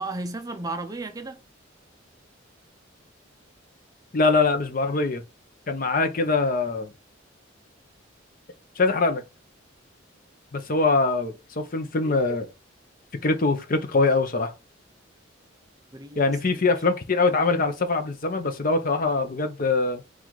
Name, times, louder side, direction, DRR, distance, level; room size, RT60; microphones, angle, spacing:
voice 1, 0.0-1.4 15.9-16.7, right 2 dB, 20° right, 0.4 m, -34 dB
voice 2, 4.1-5.2 5.7-6.9 8.8-9.2 10.5-12.5 13.2-14.5 16.2-20.0, left 3 dB, 45° left, 0.6 m, -23 dB
3.8 x 2.4 x 4.5 m
head